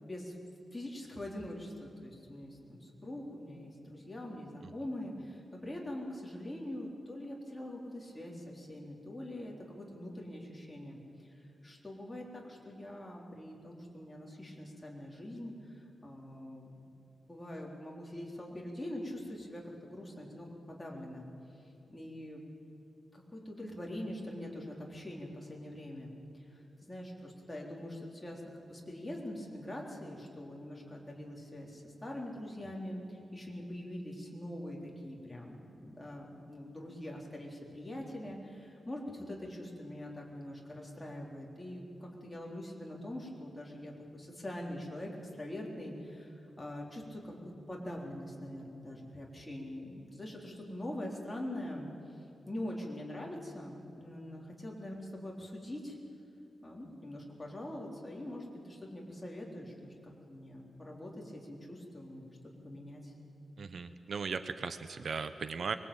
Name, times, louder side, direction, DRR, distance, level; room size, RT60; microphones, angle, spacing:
voice 1, 0.0-0.3 0.7-11.3 11.6-16.7 17.2-21.3 21.9-22.4 23.1-26.1 26.8-51.9 52.5-56.0 56.6-63.1, left 1 dB, 10° left, -2 dB, 3.9 m, -43 dB
voice 2, 63.6-65.8, right 5 dB, 55° right, 10 dB, 0.8 m, -37 dB
24.0 x 21.5 x 8.8 m, 2.7 s
wide cardioid pair, 145°, 0 cm